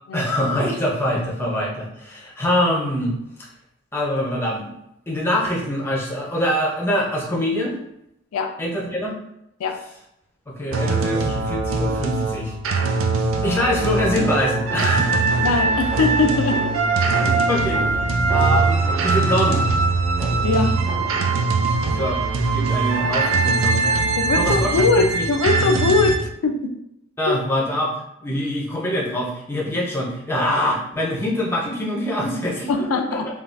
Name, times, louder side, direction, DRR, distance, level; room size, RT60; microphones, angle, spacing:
voice 1, 0.1-3.5 3.9-4.7 5.1-7.8 8.6-9.2 9.8-9.9 10.5-12.5 13.4-15.3 17.2-19.6 22.0-25.5 27.2-27.9 28.2-33.4, left 1 dB, 10° left, -3 dB, 0.5 m, -24 dB
sound 1, 10.7-26.2, right 3 dB, 70° right, 0.3 m, -21 dB
sound 2, 14.7-21.3 21.8-22.3 22.9-23.4, right 2 dB, 45° right, 1.3 m, -35 dB
voice 2, 15.4-16.7 20.4-20.8 24.2-26.7 27.3-27.4 32.7-33.3, left 3 dB, 90° left, 4 dB, 0.4 m, -21 dB
3.4 x 2.2 x 2.4 m, 0.80 s
head